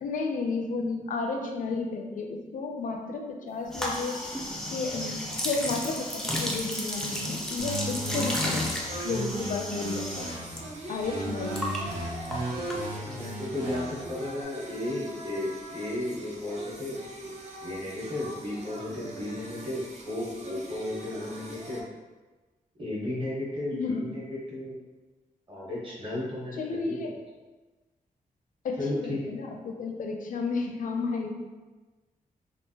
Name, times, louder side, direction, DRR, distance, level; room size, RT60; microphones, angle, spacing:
voice 1, 0.0-4.2 4.7-5.2 5.4-8.6 9.0-10.3 10.9-11.6 23.7-24.1 26.6-27.2 28.6-31.3, left 4 dB, 65° left, 2 dB, 0.4 m, -32 dB
sound 1, 3.7-10.6 10.9-13.3, left 1 dB, 5° left, 0.4 m, -33 dB
Singing, 6.1-21.8, right 1 dB, 50° right, 0.5 m, -44 dB
sound 2, 7.6-10.6 11.0-14.0, right 1 dB, 85° right, 1.0 m, -35 dB
voice 2, 12.9-17.0 17.6-21.8 22.8-24.7 25.5-27.1 28.8-29.2, left 1 dB, 35° right, -7 dB, 1.2 m, -34 dB
3.6 x 2.4 x 2.8 m, 1.2 s
wide cardioid pair, 145°, 15 cm